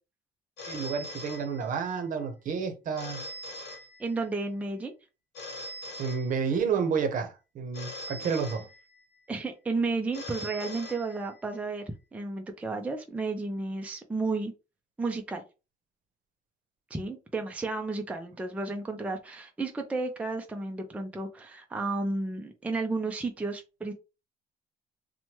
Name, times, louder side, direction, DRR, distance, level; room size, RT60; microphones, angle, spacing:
Telephone, 0.6-2.1 3.0-4.5 5.3-6.8 7.7-9.2 10.1-11.6, left 1 dB, 70° left, 0.9 m, -42 dB
voice 1, 0.7-3.2 6.0-8.7, right 6 dB, 50° right, 0.8 m, -30 dB
voice 2, 4.0-4.9 9.3-11.8 12.1-14.5 15.0-15.4 16.9-23.9, right 3 dB, 10° right, 0.4 m, -32 dB
3.0 x 2.2 x 2.9 m
cardioid pair, 110°, 17 cm